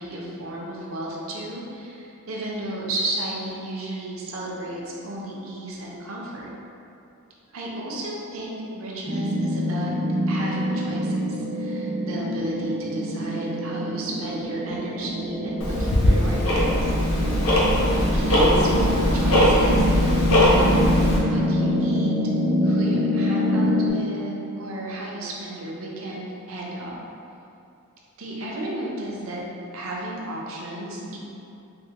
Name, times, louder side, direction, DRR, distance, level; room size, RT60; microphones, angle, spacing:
voice 1, 0.0-6.5 7.5-9.9 10.3-16.9 18.1-20.6 21.3-22.1 22.6-26.9 28.2-29.4 29.7-31.2, right 1 dB, 65° right, -3 dB, 0.5 m, -33 dB
sound 1, 9.1-23.9, left 1 dB, 15° right, 0.4 m, -25 dB
Tick-tock, 15.6-21.2, equal, 70° left, 0.6 m, -20 dB
3.4 x 2.0 x 2.8 m, 2.7 s
head